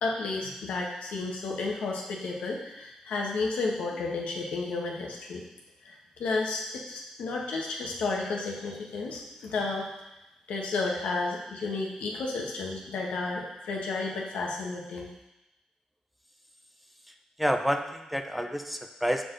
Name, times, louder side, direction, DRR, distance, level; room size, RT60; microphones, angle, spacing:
voice 1, 0.0-5.4 5.8-9.9 10.5-15.1, left 3 dB, 80° left, -1 dB, 1.2 m, -32 dB
voice 2, 17.1-19.2, equal, 5° right, 5 dB, 0.5 m, -29 dB
6.4 x 4.7 x 3.9 m, 0.93 s
cardioid pair, 65°, 2 cm